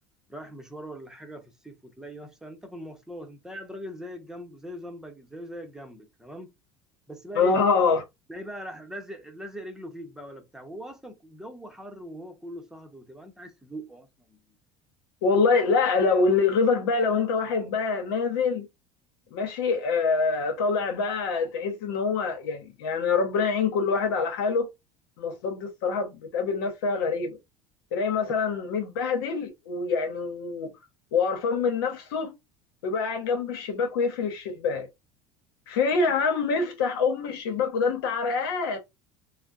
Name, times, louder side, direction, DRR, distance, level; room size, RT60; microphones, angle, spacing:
voice 1, 0.3-6.5 7.1-7.6 8.3-14.4 28.3-28.4, equal, 5° right, 0.7 m, -41 dB
voice 2, 7.3-8.0 15.2-18.7 19.3-24.7 25.2-27.4 27.9-30.7 31.1-32.3 32.8-34.9 35.7-38.8, left 4 dB, 90° left, 1.0 m, -25 dB
3.3 x 2.1 x 2.5 m
supercardioid pair, 110°, 12 cm